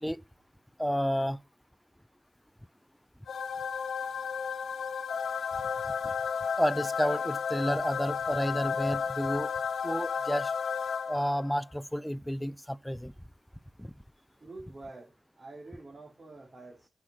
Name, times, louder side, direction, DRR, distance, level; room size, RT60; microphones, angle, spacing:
voice 1, 0.8-1.4 6.6-9.5 9.8-10.5 11.1-13.1 13.8-13.9, equal, 5° left, 0.5 m, -30 dB
sound 1, 3.3-11.5, left 6 dB, 90° left, 0.8 m, -33 dB
voice 2, 14.1-16.9, right 2 dB, 50° right, 3.1 m, -48 dB
8.7 x 6.6 x 7.4 m
cardioid pair, 60°, 0 cm